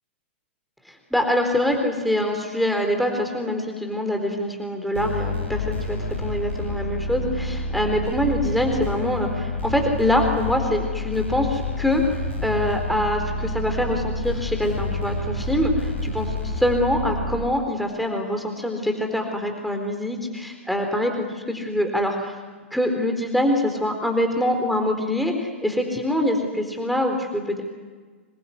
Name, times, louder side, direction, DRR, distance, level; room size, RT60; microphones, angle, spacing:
voice 1, 0.9-22.4 22.7-27.6, left 1 dB, ahead, 3 dB, 4.1 m, -24 dB
sound 1, 4.9-17.3, left 2 dB, 80° left, 6.7 m, -29 dB
27.0 x 22.5 x 9.9 m, 1.4 s
figure-of-eight pair, 105°, 7 cm